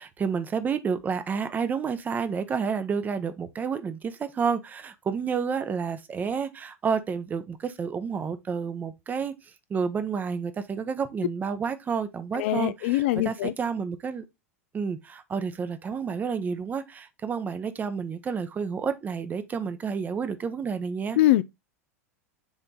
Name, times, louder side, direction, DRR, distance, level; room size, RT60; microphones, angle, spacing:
voice 1, 0.0-9.3 9.7-14.2 14.7-21.2, right 6 dB, 20° right, 0.8 m, -30 dB
voice 2, 12.4-13.5 21.2-21.4, left 15 dB, 50° left, 0.4 m, -22 dB
7.2 x 3.4 x 3.9 m
figure-of-eight pair, 85°, 8 cm